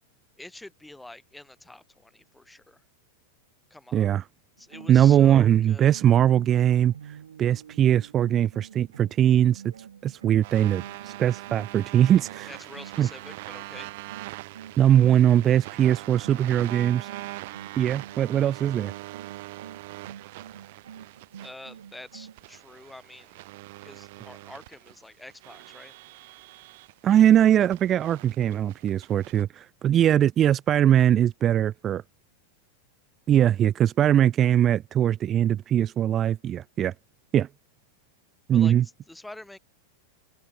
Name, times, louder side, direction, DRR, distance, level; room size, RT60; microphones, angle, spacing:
voice 1, 0.4-2.8 3.7-4.1 4.6-5.9 12.5-13.9 21.4-23.4 23.8-25.9 38.5-38.8 39.1-39.6, left 1 dB, 5° left, 2.8 m, -46 dB
voice 2, 3.9-4.2 4.9-9.6 10.0-12.5 13.0-13.1 14.8-17.1 17.8-18.9 27.0-32.0 33.3-36.9 37.3-37.5 38.5-38.8, right 10 dB, 30° right, 0.4 m, -21 dB
sound 1, 4.6-13.4 13.7-22.4, right 8 dB, 85° right, 1.6 m, -47 dB
sound 2, 10.4-29.4, right 20 dB, 60° right, 1.3 m, -42 dB
hypercardioid pair, 105°, 0 cm